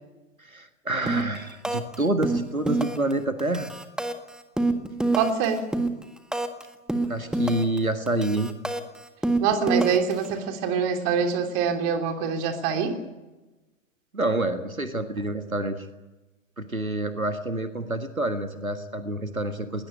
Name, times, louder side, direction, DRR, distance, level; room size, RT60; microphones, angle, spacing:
voice 1, 0.4-3.7 7.1-8.5 14.1-15.9 16.6-19.9, right 2 dB, 90° right, 8 dB, 1.8 m, -28 dB
sound 1, 1.1-1.4 1.6-2.0 2.2-3.1 3.4-6.6 6.9-7.8 8.1-10.3, right 2 dB, ahead, 1.6 m, -26 dB
voice 2, 5.1-5.6 9.4-13.0, right 6 dB, 35° right, 5 dB, 3.3 m, -25 dB
20.5 x 20.0 x 8.9 m, 1.1 s
figure-of-eight pair, 105°, 41 cm